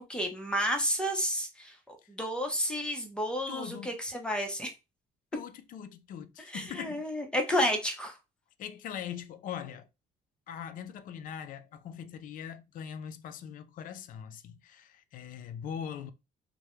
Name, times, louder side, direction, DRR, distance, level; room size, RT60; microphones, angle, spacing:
voice 1, 0.1-4.7 6.5-8.2, equal, 5° left, 0.6 m, -31 dB
voice 2, 3.5-3.9 5.3-7.1 7.5-7.6 8.6-9.9 10.5-16.1, left 8 dB, 55° left, 0.4 m, -41 dB
2.2 x 2.0 x 3.0 m
cardioid pair, 110°, 17 cm